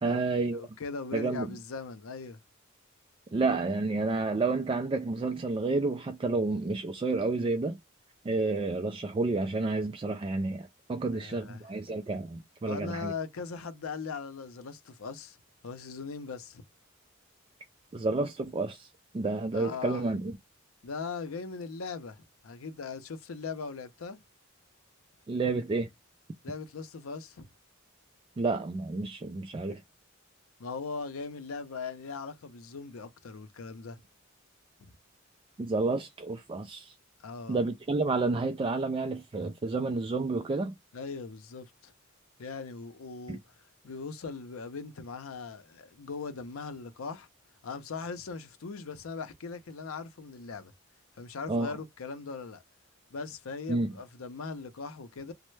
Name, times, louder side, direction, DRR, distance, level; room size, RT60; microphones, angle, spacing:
voice 1, 0.0-0.6 1.1-1.5 3.3-7.8 8.2-13.1 17.9-20.4 25.3-25.9 28.4-29.8 35.6-37.0 37.5-40.8 43.3-43.4 51.5-51.7 53.7-53.9, right 3 dB, 25° right, 0.3 m, -30 dB
voice 2, 0.6-2.4 11.1-11.6 12.7-15.4 15.6-16.6 19.5-20.0 20.8-24.2 26.4-27.5 30.6-34.0 34.8-34.9 37.2-37.6 40.9-41.9 42.4-43.4 43.8-47.3 47.6-50.7 51.2-52.6 53.1-55.3, left 4 dB, 85° left, 0.6 m, -39 dB
3.2 x 2.0 x 3.1 m
head